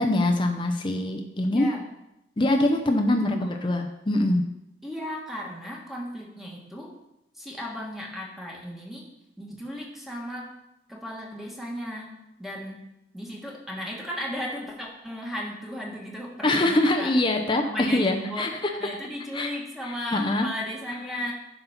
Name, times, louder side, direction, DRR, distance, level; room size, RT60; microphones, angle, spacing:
voice 1, 0.0-1.7 2.4-4.4 16.4-18.5 19.3-19.5 20.1-20.5, left 1 dB, 25° left, 3 dB, 0.7 m, -23 dB
voice 2, 1.5-1.8 3.2-3.6 4.8-6.9 7.3-9.1 9.4-10.5 10.9-17.2 17.6-18.5 18.8-21.3, equal, ahead, -2 dB, 1.5 m, -35 dB
11.0 x 4.2 x 5.8 m, 0.86 s
head